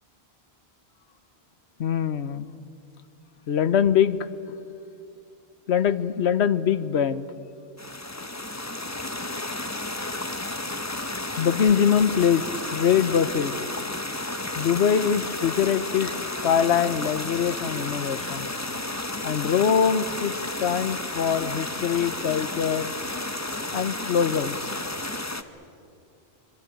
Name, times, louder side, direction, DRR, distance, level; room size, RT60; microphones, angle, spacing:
voice 1, 1.8-2.5 3.5-4.2 5.7-7.3 11.4-12.4 12.7-13.5 14.6-18.5 19.2-20.3 20.6-22.9 23.7-24.7, left 8 dB, 85° left, 15 dB, 1.2 m, -23 dB
sound 1, 7.8-25.4, left 2 dB, 15° left, 1.0 m, -32 dB
25.0 x 24.5 x 9.2 m, 2.5 s
omnidirectional pair, 1.1 m